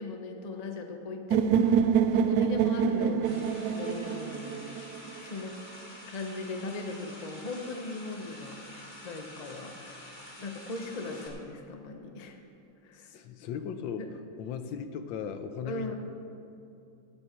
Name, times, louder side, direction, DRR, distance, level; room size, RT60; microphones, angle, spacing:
voice 1, 0.0-5.6 6.1-10.0 10.4-12.4 12.8-13.1 14.0-14.1 15.6-16.0, left 3 dB, 55° left, 4 dB, 0.4 m, -39 dB
sound 1, 1.3-5.3, right 7 dB, 90° right, 0.9 m, -26 dB
sound 2, 3.2-11.3, left 1 dB, 20° left, 2.0 m, -48 dB
voice 2, 13.0-14.1 14.4-16.0, left 7 dB, 70° left, 9 dB, 1.3 m, -37 dB
16.5 x 9.7 x 4.5 m, 2.7 s
omnidirectional pair, 2.4 m